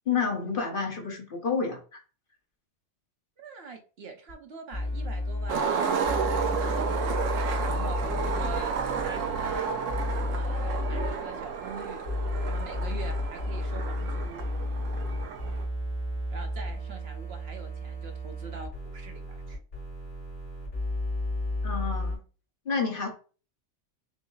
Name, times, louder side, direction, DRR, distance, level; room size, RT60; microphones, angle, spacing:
voice 1, 0.1-2.0 21.6-22.2 22.6-23.1, left 5 dB, 50° left, 3 dB, 1.1 m, -29 dB
voice 2, 3.4-5.7 6.2-9.7 10.3-12.0 12.5-14.5 16.3-19.6, right 4 dB, 60° right, 5 dB, 1.0 m, -44 dB
sound 1, 4.3-4.4 4.7-5.5 6.0-9.6 9.9-11.1 12.0-22.1, left 1 dB, 70° left, 2.6 m, -32 dB
Skateboard, 5.5-15.6, right 6 dB, 85° right, 1.1 m, -31 dB
6.1 x 2.0 x 3.8 m, 0.37 s
omnidirectional pair, 1.3 m